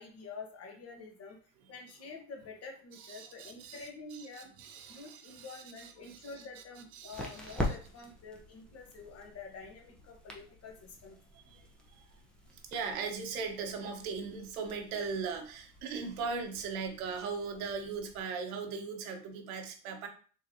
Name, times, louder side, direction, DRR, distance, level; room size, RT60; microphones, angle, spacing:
voice 1, 0.0-1.4 1.7-4.5 4.9-11.2, left 4 dB, 35° left, 2 dB, 1.3 m, -47 dB
voice 2, 2.9-6.6 6.9-7.8 12.7-20.1, right 5 dB, 65° right, 4 dB, 1.1 m, -39 dB
sound 1, 5.8-18.2, left 1 dB, ahead, 0.7 m, -45 dB
3.8 x 3.1 x 2.8 m, 0.41 s
hypercardioid pair, 100°, 44 cm